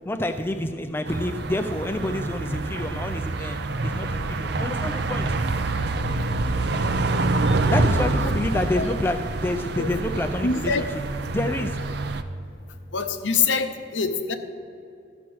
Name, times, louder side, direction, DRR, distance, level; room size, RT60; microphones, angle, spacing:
voice 1, 0.1-3.6 3.8-5.3 7.7-11.9, left 1 dB, 10° left, 7 dB, 0.4 m, -28 dB
sound 1, 1.1-12.2, right 2 dB, 60° right, 0.5 m, -26 dB
voice 2, 10.4-10.8 12.9-14.3, left 5 dB, 75° left, 8 dB, 0.7 m, -24 dB
13.0 x 5.9 x 6.2 m, 2.6 s
head